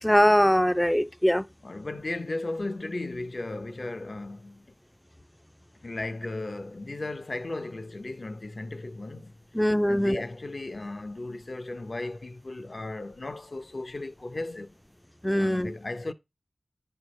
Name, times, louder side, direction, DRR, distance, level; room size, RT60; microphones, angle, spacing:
voice 1, 0.0-1.4 9.5-10.2 15.2-15.7, equal, 10° left, 0.4 m, -22 dB
voice 2, 1.6-4.7 5.8-9.4 9.9-14.7 15.4-16.1, left 2 dB, 55° left, 0.7 m, -35 dB
10.5 x 4.6 x 3.2 m
cardioid pair, 45°, 0 cm